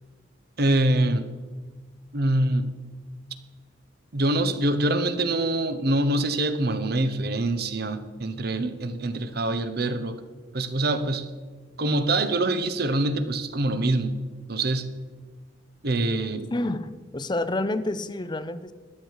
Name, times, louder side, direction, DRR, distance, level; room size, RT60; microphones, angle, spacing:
voice 1, 0.6-1.3 2.1-2.7 4.1-10.2 10.5-11.3 11.8-14.2 14.5-15.0 15.8-16.5, right 1 dB, 60° right, 11 dB, 0.9 m, -25 dB
voice 2, 16.5-18.7, left 2 dB, 25° left, 12 dB, 0.6 m, -29 dB
13.0 x 10.5 x 4.7 m, 1.4 s
head